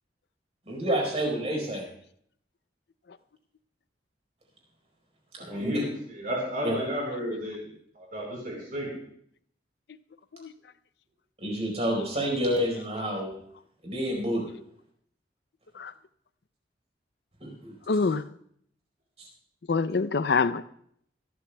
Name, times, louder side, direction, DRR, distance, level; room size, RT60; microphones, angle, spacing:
voice 1, 0.7-1.9 5.3-5.8 6.6-6.8 11.4-13.3 13.8-14.6 17.4-17.7, equal, 35° right, 1 dB, 4.4 m, -29 dB
voice 2, 5.4-7.6 7.9-9.0, equal, 50° right, -3 dB, 4.4 m, -32 dB
voice 3, 17.9-18.3 19.7-20.6, left 4 dB, 65° left, 14 dB, 0.5 m, -25 dB
25.0 x 12.5 x 2.3 m, 0.67 s
head